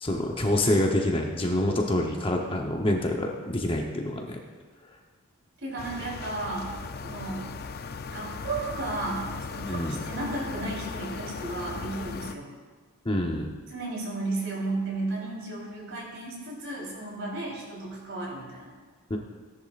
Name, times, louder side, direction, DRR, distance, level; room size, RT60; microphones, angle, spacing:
voice 1, 0.0-4.4 9.7-10.0 13.0-13.5 19.1-19.2, left 1 dB, 25° left, 1 dB, 0.9 m, -26 dB
voice 2, 5.6-6.7 7.0-7.5 8.1-12.5 13.7-18.7, right 2 dB, 55° right, -3 dB, 3.7 m, -34 dB
sound 1, 5.8-12.3, left 4 dB, 45° left, 0.4 m, -37 dB
17.0 x 10.5 x 2.5 m, 1.4 s
head